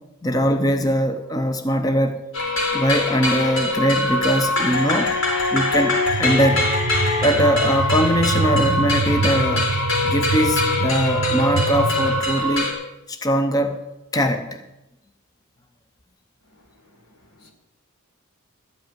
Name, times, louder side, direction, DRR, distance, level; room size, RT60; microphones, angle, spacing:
voice 1, 0.2-2.2 2.7-5.1 5.5-6.7 7.2-9.7 10.0-12.7 13.1-13.8 14.1-14.6, equal, 15° left, 6 dB, 0.7 m, -21 dB
sound 1, 2.3-12.7, left 2 dB, 60° left, 3.7 m, -23 dB
sound 2, 6.1-12.2, right 4 dB, 65° right, 0.4 m, -26 dB
voice 2, 16.5-17.5, left 1 dB, 90° left, 2 dB, 2.6 m, -56 dB
13.0 x 5.5 x 9.1 m, 0.94 s
head